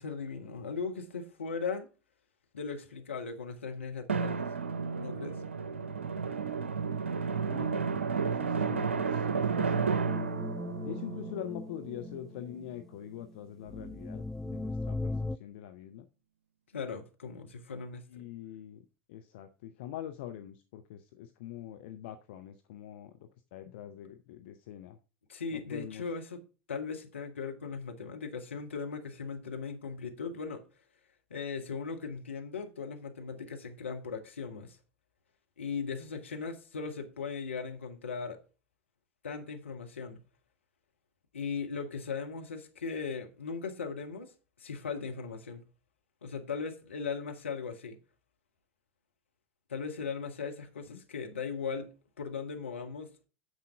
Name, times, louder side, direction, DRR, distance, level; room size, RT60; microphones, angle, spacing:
voice 1, 0.0-1.9 2.5-4.5 5.0-5.4 16.7-18.3 25.3-26.4 26.7-30.6 31.3-34.8 35.6-38.4 39.2-40.2 41.3-44.3 44.6-45.6 46.2-48.0 49.7-53.1, left 5 dB, 80° left, 1.6 m, -38 dB
Drum, 4.1-12.4, right 5 dB, 80° right, 0.5 m, -32 dB
voice 2, 8.4-10.2 10.8-16.1 18.1-18.8 19.1-25.0 25.5-26.0 50.9-51.0, left 11 dB, 60° left, 0.8 m, -44 dB
sound 1, 10.1-13.4 13.6-15.4, left 2 dB, 5° left, 0.4 m, -38 dB
9.7 x 7.3 x 3.6 m
figure-of-eight pair, 75°, 7 cm